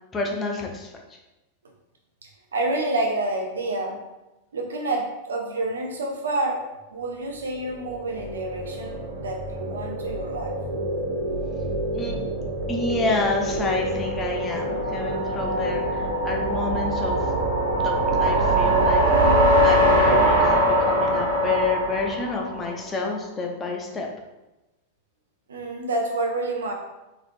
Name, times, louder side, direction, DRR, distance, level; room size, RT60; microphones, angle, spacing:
voice 1, 0.1-0.9 11.9-12.2 12.7-17.2 17.8-19.4 19.6-24.1, left 3 dB, 20° left, 1 dB, 0.7 m, -29 dB
voice 2, 2.5-4.0 4.5-6.6 6.9-10.5 25.5-26.7, right 2 dB, 70° right, 1 dB, 0.7 m, -28 dB
sound 1, 7.6-22.8, right 1 dB, 75° left, 1.3 m, -23 dB
4.0 x 3.1 x 2.6 m, 1.0 s
figure-of-eight pair, 90°, 0 cm